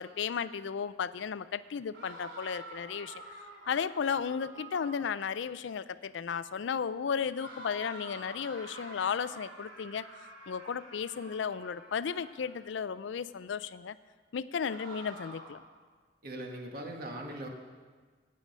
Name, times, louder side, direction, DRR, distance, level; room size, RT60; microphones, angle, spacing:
voice 1, 0.0-3.2 3.7-10.1 10.5-14.0 14.3-15.6, left 6 dB, 75° left, 16 dB, 0.4 m, -34 dB
sound 1, 1.9-5.3 7.4-12.6 14.6-15.7, right 2 dB, 85° right, 2.5 m, -48 dB
voice 2, 16.2-17.5, right 1 dB, 55° right, 2 dB, 1.6 m, -40 dB
17.5 x 7.7 x 5.4 m, 1.5 s
head